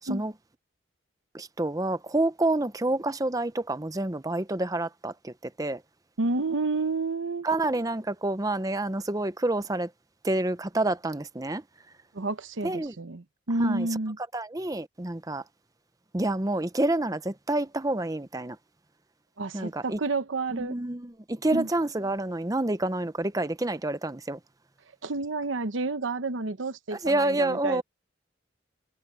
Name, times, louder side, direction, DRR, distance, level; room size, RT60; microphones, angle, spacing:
voice 1, 1.3-5.8 7.4-9.9 10.2-11.6 12.6-12.9 13.6-13.9 14.2-15.4 16.1-18.6 19.5-20.0 20.5-24.4 26.9-27.8, right 2 dB, 20° right, 0.7 m, -28 dB
voice 2, 6.2-7.5 12.1-14.2 19.4-20.7 21.5-21.7 25.0-27.8, right 3 dB, 85° right, 1.0 m, -30 dB
head